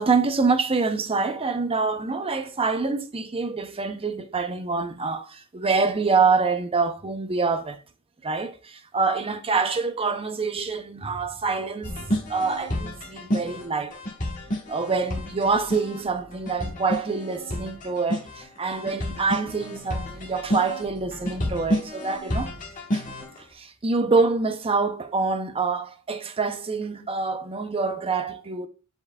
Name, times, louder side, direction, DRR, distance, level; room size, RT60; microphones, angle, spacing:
voice 1, 0.0-7.8 8.2-13.9 14.7-22.5 22.9-23.1 23.4-28.7, right 4 dB, 25° right, 0.6 m, -26 dB
sound 1, 11.8-23.4, equal, 35° left, 1.4 m, -30 dB
9.7 x 4.5 x 2.3 m
head